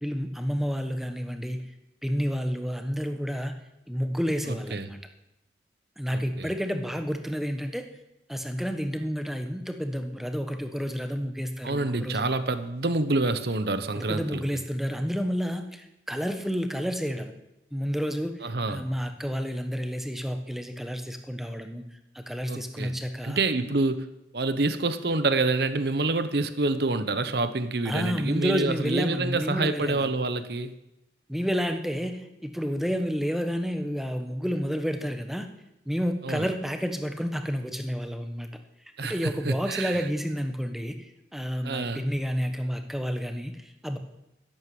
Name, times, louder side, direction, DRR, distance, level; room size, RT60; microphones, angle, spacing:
voice 1, 0.0-1.6 2.0-3.6 3.9-5.0 6.0-7.8 8.3-12.2 13.9-17.3 17.7-21.8 22.1-23.4 27.8-30.1 31.3-35.5 35.8-38.5 39.0-44.0, equal, ahead, 1.2 m, -30 dB
voice 2, 4.5-4.9 6.1-6.5 11.6-14.4 18.4-18.8 22.5-22.9 23.2-24.1 24.3-30.7 36.2-36.5 39.0-40.0 41.6-42.0, right 3 dB, 60° right, 1.0 m, -27 dB
13.5 x 11.0 x 7.7 m
head